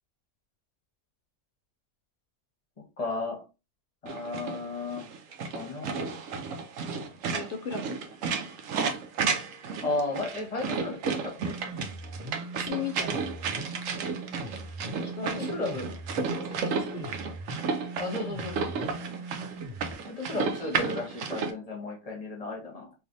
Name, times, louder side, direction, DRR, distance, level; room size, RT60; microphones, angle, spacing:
voice 1, 3.0-3.4 4.0-5.0 5.5-6.2 9.8-11.8 15.2-15.9 16.9-17.0 18.0-18.9 20.1-22.9, left 2 dB, 35° left, 1 dB, 0.9 m, -34 dB
sound 1, 4.1-21.5, right 5 dB, 80° right, 1.0 m, -33 dB
voice 2, 7.3-8.2 12.5-13.2 15.0-15.7 16.6-17.1, left 6 dB, 65° left, 4 dB, 0.6 m, -37 dB
sound 2, 11.4-19.9, right 2 dB, 50° right, 1.3 m, -41 dB
3.2 x 2.7 x 2.6 m, 0.28 s
omnidirectional pair, 1.3 m